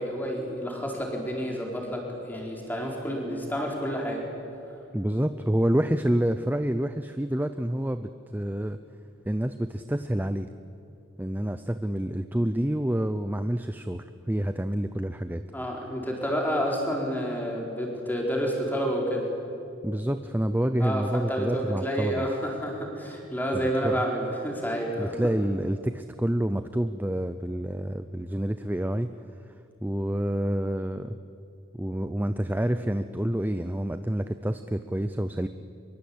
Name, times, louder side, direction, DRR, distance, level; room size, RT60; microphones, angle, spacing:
voice 1, 0.0-4.3 4.7-4.8 15.5-19.3 20.8-25.1, equal, 10° left, -1 dB, 4.4 m, -29 dB
voice 2, 4.9-8.8 9.3-10.5 11.2-15.4 19.8-22.2 23.5-24.0 25.0-29.1 29.4-31.2 31.7-35.5, right 1 dB, 10° right, 10 dB, 0.6 m, -28 dB
24.0 x 23.0 x 8.7 m, 2.7 s
head